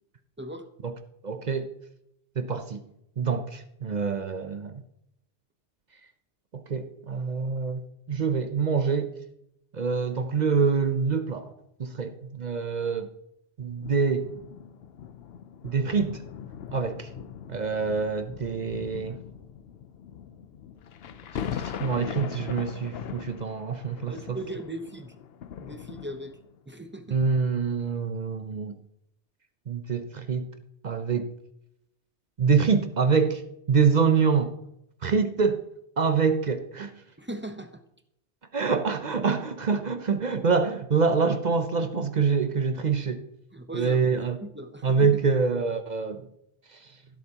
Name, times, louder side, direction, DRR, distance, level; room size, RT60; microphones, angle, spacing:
voice 1, 1.2-1.7 2.4-2.8 3.2-4.7 6.5-9.1 9.7-11.5 11.8-13.1 13.6-14.3 15.6-16.2 16.7-17.1 17.5-19.2 21.5-24.4 27.1-28.8 29.7-30.5 30.8-31.3 32.4-33.4 33.7-34.5 35.0-35.6 36.0-36.9 38.5-43.2 43.7-44.4 44.8-46.2 46.7-46.9, right 5 dB, 45° right, 0.7 m, -26 dB
sound 1, 13.8-26.6 27.3-27.4, left 8 dB, 65° left, 0.8 m, -40 dB
voice 2, 24.1-25.1 25.6-26.4 26.7-27.2 37.2-37.8 43.5-44.0 44.4-45.2, right 1 dB, 10° right, 0.7 m, -38 dB
16.5 x 8.0 x 2.9 m
omnidirectional pair, 1.2 m